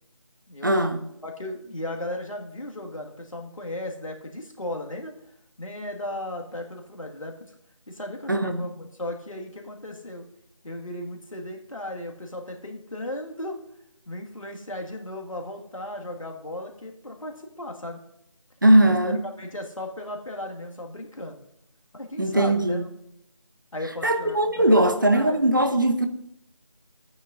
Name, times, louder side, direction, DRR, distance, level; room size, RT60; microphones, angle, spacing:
voice 1, 0.6-1.0 8.3-8.6 18.6-19.2 22.2-22.9 24.0-26.1, right 1 dB, 35° right, 0.6 m, -20 dB
voice 2, 1.2-5.1 5.6-7.5 7.9-10.3 10.6-13.6 14.1-18.0 18.8-21.4 21.9-22.8 23.7-25.4, left 1 dB, 70° left, 1.8 m, -36 dB
15.0 x 9.1 x 2.6 m
figure-of-eight pair, 170°, 17 cm